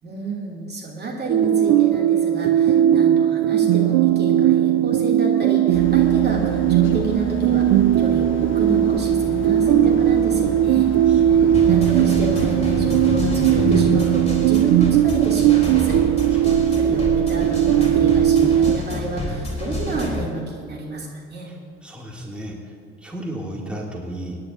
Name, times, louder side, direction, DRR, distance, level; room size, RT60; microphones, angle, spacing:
voice 1, 0.0-10.9 11.3-16.0 16.7-21.5, right 2 dB, 30° right, -3 dB, 2.9 m, -30 dB
sound 1, 1.3-18.8, right 11 dB, 55° right, 0.5 m, -18 dB
sound 2, 5.7-14.1, left 4 dB, 40° left, 1.0 m, -30 dB
voice 2, 11.1-11.6 16.3-17.0 21.8-22.5 23.0-24.4, right 1 dB, 5° right, -3 dB, 2.7 m, -34 dB
sound 3, 11.5-20.3, equal, 20° left, 3.8 m, -29 dB
26.0 x 10.5 x 2.8 m, 2.4 s
figure-of-eight pair, 45°, 32 cm